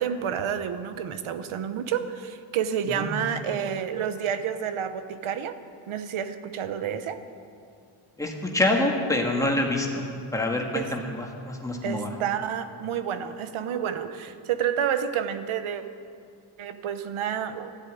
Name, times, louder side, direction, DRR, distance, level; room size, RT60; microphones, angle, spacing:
voice 1, 0.0-5.5 5.9-7.2 10.7-10.9 11.8-15.8 16.6-17.7, right 8 dB, 85° right, 11 dB, 1.1 m, -29 dB
voice 2, 8.2-12.1, left 1 dB, 5° left, 0 dB, 1.8 m, -26 dB
13.5 x 11.5 x 9.3 m, 2.4 s
wide cardioid pair, 175°, 47 cm